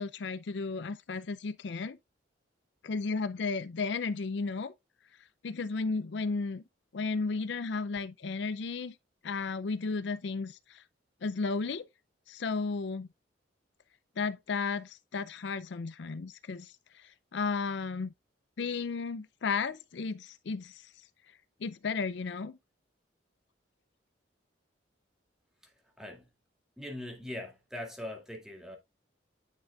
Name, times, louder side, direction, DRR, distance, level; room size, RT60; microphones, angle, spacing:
voice 1, 0.0-2.0 2.8-4.7 5.4-6.6 6.9-8.9 9.2-10.6 11.2-11.8 12.3-13.1 14.2-16.7 17.3-18.1 18.6-20.7 21.6-22.6, left 4 dB, 65° left, 0.5 m, -33 dB
voice 2, 26.8-28.8, left 1 dB, 5° right, 2.0 m, -41 dB
9.7 x 6.0 x 2.3 m
head